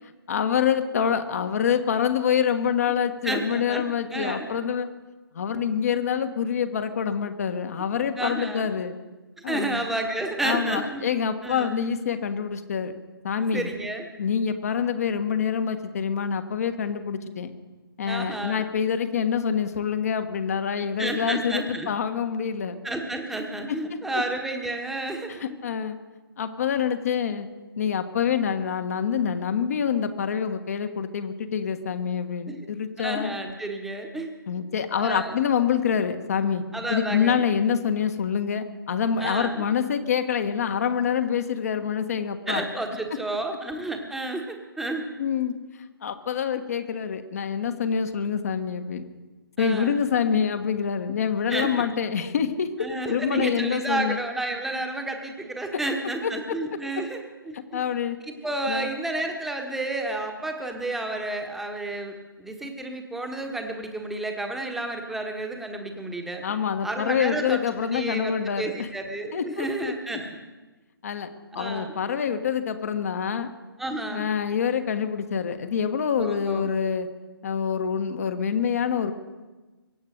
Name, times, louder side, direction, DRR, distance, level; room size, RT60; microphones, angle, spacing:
voice 1, 0.3-4.9 5.3-9.0 9.4-9.8 10.4-12.9 13.2-13.7 14.2-17.5 18.0-22.8 23.9-24.2 25.3-26.0 26.4-27.5 27.8-33.3 34.5-36.6 36.9-42.6 45.2-45.5 46.0-49.0 49.6-52.7 53.0-54.2 56.2-56.3 57.0-57.1 57.5-58.2 58.7-58.9 66.4-68.9 69.3-69.9 71.0-71.3 71.5-73.5 74.1-77.1 77.4-79.1, left 7 dB, 40° left, 8 dB, 1.4 m, -26 dB
voice 2, 3.2-3.8 4.1-4.5 8.2-8.7 9.5-11.0 11.4-11.7 13.4-14.1 18.1-18.6 21.0-21.9 22.8-25.3 32.5-32.7 33.0-34.3 35.0-35.3 36.7-37.4 39.2-39.6 42.5-45.1 49.6-49.9 51.5-51.8 52.8-57.8 58.3-66.4 66.8-67.6 67.9-70.3 71.5-71.9 73.8-74.3 76.2-76.7, right 2 dB, ahead, 3 dB, 1.3 m, -31 dB
23.0 x 8.7 x 6.5 m, 1.2 s
figure-of-eight pair, 145°, 12 cm